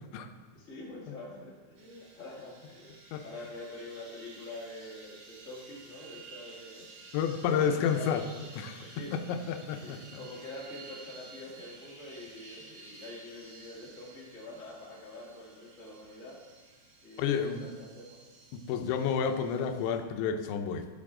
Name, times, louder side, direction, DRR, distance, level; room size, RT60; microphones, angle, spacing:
voice 1, 0.5-3.0 3.2-6.9 7.4-8.1 8.8-9.2 9.8-16.4 17.0-18.2, left 2 dB, 50° left, -6 dB, 0.9 m, -45 dB
sound 1, 1.8-20.0, right 3 dB, 60° right, 2.3 m, -53 dB
voice 2, 7.1-8.2 8.6-10.2 17.2-17.7 18.5-20.9, left 7 dB, 80° left, 7 dB, 2.9 m, -30 dB
14.5 x 5.4 x 3.6 m, 1.4 s
omnidirectional pair, 5.5 m